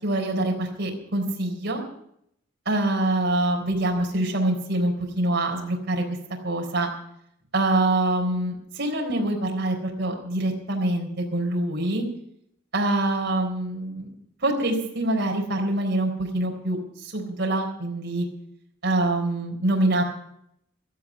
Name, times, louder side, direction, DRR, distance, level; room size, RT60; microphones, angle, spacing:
voice 1, 0.0-1.8 2.7-6.1 6.4-6.9 7.5-12.1 12.7-14.1 14.4-18.3 18.8-20.0, right 1 dB, 55° right, 0 dB, 4.0 m, -25 dB
16.5 x 13.5 x 5.1 m, 0.73 s
head